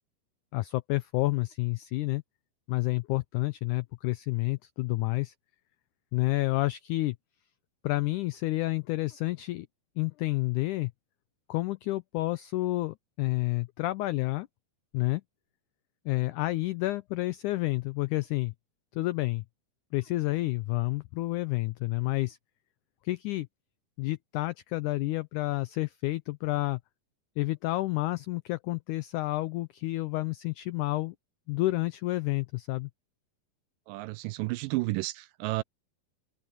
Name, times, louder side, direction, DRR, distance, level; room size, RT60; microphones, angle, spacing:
voice 1, 0.5-2.2 2.7-5.3 6.1-7.2 7.8-9.7 10.0-10.9 11.5-14.5 14.9-15.2 16.1-18.5 18.9-19.4 19.9-22.4 23.0-23.5 24.0-26.8 27.4-31.2 31.5-32.9, left 19 dB, 85° left, 1.7 m, -29 dB
voice 2, 33.9-35.6, right 21 dB, 80° right, 2.1 m, -31 dB
omnidirectional pair, 4.2 m